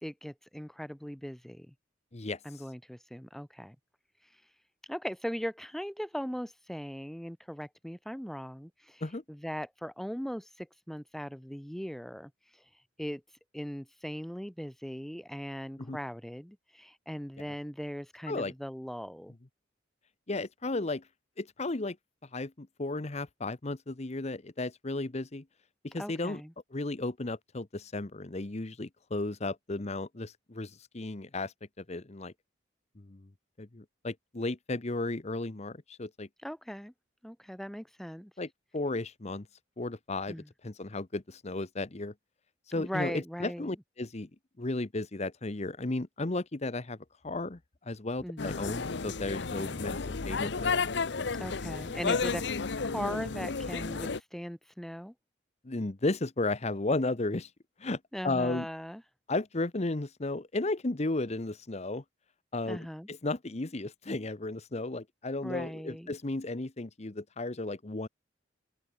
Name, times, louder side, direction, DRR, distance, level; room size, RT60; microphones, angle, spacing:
voice 1, 0.0-1.7 2.4-3.8 4.9-9.0 9.3-12.3 13.0-13.2 13.5-19.3 26.0-26.5 36.4-36.9 37.2-38.3 40.3-40.5 42.7-43.7 48.2-48.6 49.6-50.0 51.4-52.4 52.8-55.1 58.1-59.0 62.7-63.1 65.4-66.2, equal, ahead, 1.1 m, -39 dB
voice 2, 20.3-21.1 21.4-22.0 22.3-25.4 25.8-26.4 26.7-32.3 33.0-33.3 33.6-36.3 38.4-39.5 39.8-42.1 42.7-44.3 44.6-47.0 47.2-50.0 50.2-50.8 52.1-52.2 55.6-57.5 57.8-58.7 59.3-62.0 62.5-68.1, left 2 dB, 35° left, 0.9 m, -34 dB
sound 1, 48.4-54.2, left 4 dB, 65° left, 0.8 m, -32 dB
open air
head